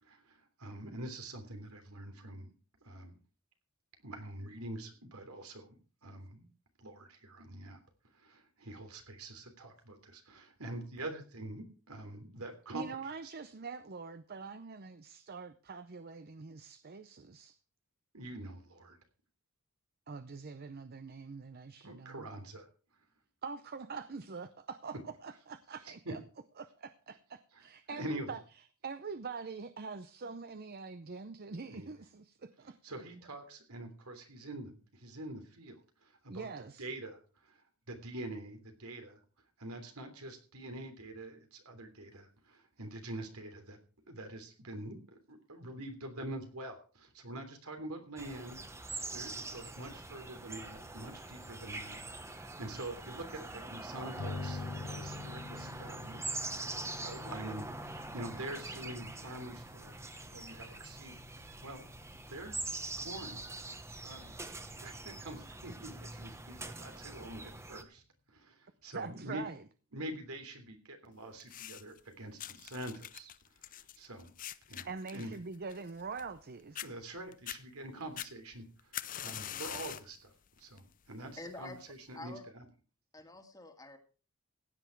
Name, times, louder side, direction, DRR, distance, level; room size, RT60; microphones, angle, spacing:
voice 1, 0.0-2.5 2.8-3.2 4.0-6.4 6.8-7.8 8.1-12.8 13.2-13.3 18.1-19.0 21.8-22.7 25.8-26.1 27.5-27.6 27.9-28.3 30.2-30.3 31.7-31.9 32.8-35.8 36.0-36.5 36.8-37.6 37.9-39.2 39.6-43.8 44.1-54.6 54.9-60.0 60.3-61.8 62.3-62.6 63.0-63.4 64.0-64.3 64.8-68.0 68.3-69.4 69.9-73.3 73.7-74.3 74.7-75.3 76.8-80.3 80.6-82.6, right 1 dB, 85° right, 3.2 m, -45 dB
voice 2, 12.7-17.6 20.1-22.3 23.4-24.9 25.2-26.2 26.6-28.4 28.8-32.8 36.3-36.9 68.9-69.6 74.9-76.9, right 4 dB, 45° right, 0.6 m, -44 dB
sound 1, 48.2-67.8, right 2 dB, 15° right, 1.0 m, -44 dB
sound 2, 54.2-65.2, left 3 dB, 80° left, 0.8 m, -47 dB
sound 3, 71.4-72.0 72.4-76.4 76.7-76.9 77.3-77.6 78.2-80.1 80.6-80.9 81.7-81.8, left 11 dB, 40° left, 0.5 m, -43 dB
voice 3, 81.4-81.8 82.2-82.5 83.1-84.0, left 2 dB, 15° left, 1.8 m, -47 dB
16.0 x 9.3 x 4.6 m
head